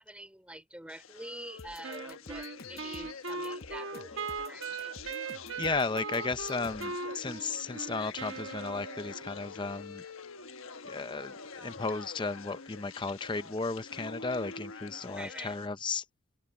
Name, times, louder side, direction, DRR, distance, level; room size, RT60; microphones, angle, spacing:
voice 1, 0.0-5.0 15.1-15.6, right 1 dB, 5° right, 2.9 m, -46 dB
sound 1, 0.9-15.7, left 5 dB, 75° left, 1.2 m, -46 dB
sound 2, 1.6-7.0, left 3 dB, 45° left, 1.0 m, -51 dB
Wind instrument woodwind instrument, 1.8-9.3, right 4 dB, 65° right, 1.2 m, -39 dB
voice 2, 5.6-10.0 10.8-16.1, left 3 dB, 20° left, 0.6 m, -34 dB
open air
head